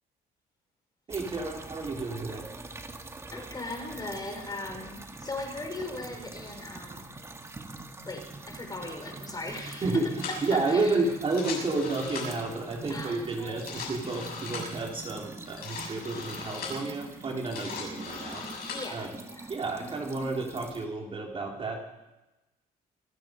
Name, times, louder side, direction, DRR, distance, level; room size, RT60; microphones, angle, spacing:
sound 1, 1.1-20.9, right 3 dB, 15° right, 1.5 m, -44 dB
voice 1, 1.1-2.5 9.8-10.1 10.4-18.4 18.9-19.2 19.5-21.8, right 3 dB, 30° right, 0 dB, 3.4 m, -31 dB
voice 2, 3.3-7.0 8.0-9.9 10.3-11.0 12.9-13.8 18.7-19.5, left 2 dB, 25° left, 3 dB, 4.7 m, -39 dB
sound 2, 10.2-10.5 11.2-12.5 13.4-14.8 15.5-16.9 17.3-18.9, left 5 dB, 60° left, 7.1 m, -39 dB
26.0 x 9.6 x 5.2 m, 0.99 s
cardioid pair, 110°, 17 cm